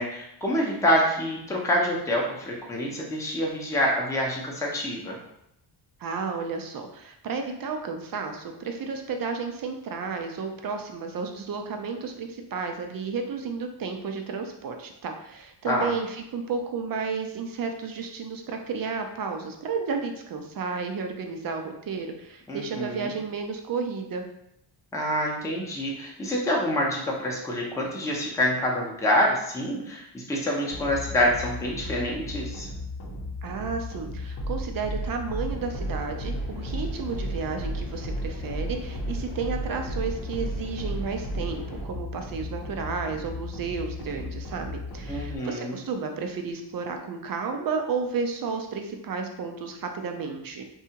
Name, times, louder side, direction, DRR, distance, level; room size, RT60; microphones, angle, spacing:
voice 1, 0.0-5.2 15.6-15.9 22.5-23.1 24.9-32.7 45.1-45.8, equal, 5° left, -3 dB, 0.6 m, -26 dB
voice 2, 6.0-24.2 33.4-50.6, right 5 dB, 50° right, 4 dB, 0.5 m, -32 dB
sound 1, 30.7-45.4, equal, 55° left, 0.7 m, -34 dB
sound 2, 35.5-41.8, left 1 dB, 30° left, 1.0 m, -44 dB
2.7 x 2.3 x 2.8 m, 0.80 s
cardioid pair, 65°, 47 cm